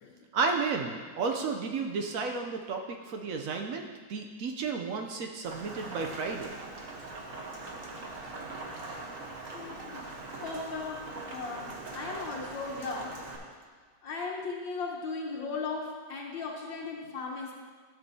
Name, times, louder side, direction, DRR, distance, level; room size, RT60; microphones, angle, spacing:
voice 1, 0.3-6.5, right 4 dB, 75° right, 3 dB, 0.7 m, -32 dB
Rain, 5.4-13.4, right 2 dB, 50° right, 1.3 m, -42 dB
voice 2, 9.5-10.0 10.4-13.1 14.0-17.5, left 4 dB, 80° left, -2 dB, 1.7 m, -37 dB
13.0 x 7.3 x 2.7 m, 1.5 s
omnidirectional pair, 2.1 m